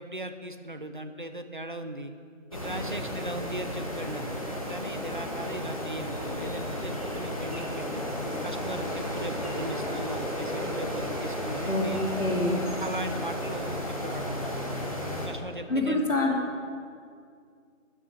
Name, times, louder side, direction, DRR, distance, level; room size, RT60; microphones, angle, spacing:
voice 1, 0.0-2.1 2.5-8.0 8.4-12.1 12.8-14.5 15.3-16.0, right 1 dB, 40° right, 8 dB, 0.8 m, -38 dB
sound 1, 2.5-15.3, left 1 dB, 25° left, 1.7 m, -33 dB
voice 2, 12.1-12.6 15.7-16.4, left 2 dB, 70° left, -1 dB, 3.3 m, -26 dB
13.0 x 9.1 x 8.6 m, 2.2 s
figure-of-eight pair, 175°, 40 cm